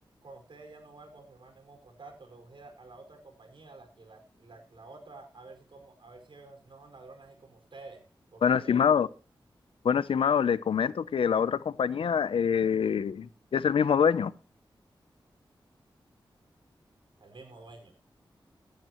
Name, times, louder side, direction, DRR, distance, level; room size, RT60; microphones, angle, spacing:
voice 1, 0.2-8.0 8.3-8.8 17.2-17.9, right 3 dB, 65° right, 5.0 m, -50 dB
voice 2, 8.4-9.1 9.8-14.3, left 7 dB, 85° left, 0.5 m, -25 dB
16.5 x 10.5 x 3.0 m
cardioid pair, 45°, 9 cm